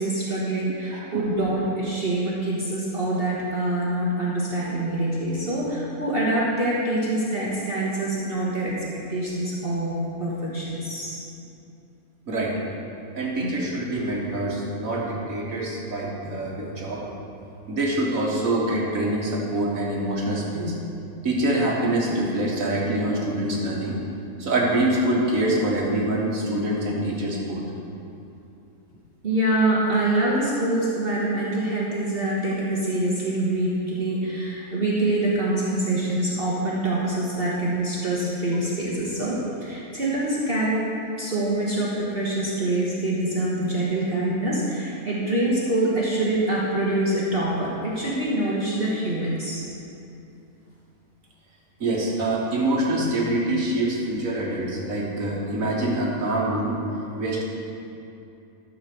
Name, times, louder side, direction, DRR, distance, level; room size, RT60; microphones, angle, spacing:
voice 1, 0.0-11.2 13.3-13.5 29.2-40.9 41.2-49.6, right 1 dB, 40° right, -6 dB, 1.5 m, -25 dB
voice 2, 0.9-1.2 12.3-12.5 13.2-17.1 17.7-20.7 21.2-24.0 24.4-27.6 51.8-56.8 57.2-57.4, right 1 dB, 65° right, -3 dB, 2.0 m, -25 dB
13.0 x 4.8 x 6.8 m, 2.8 s
omnidirectional pair, 1.5 m